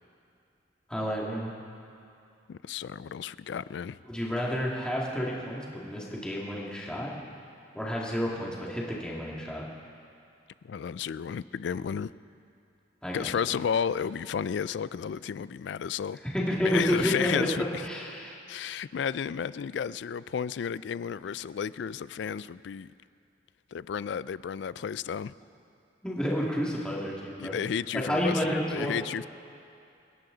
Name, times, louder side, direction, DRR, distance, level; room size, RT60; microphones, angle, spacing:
voice 1, 0.9-1.5 4.0-7.1 7.7-9.7 13.0-13.3 16.2-17.5 17.8-18.4 26.0-27.6 27.9-29.0, equal, 5° left, -4 dB, 2.2 m, -30 dB
voice 2, 2.5-4.0 10.6-12.1 13.1-16.2 16.6-17.8 18.5-22.9 23.7-25.3 27.4-29.3, left 7 dB, 65° left, 18 dB, 0.3 m, -32 dB
28.0 x 11.0 x 3.9 m, 2.5 s
head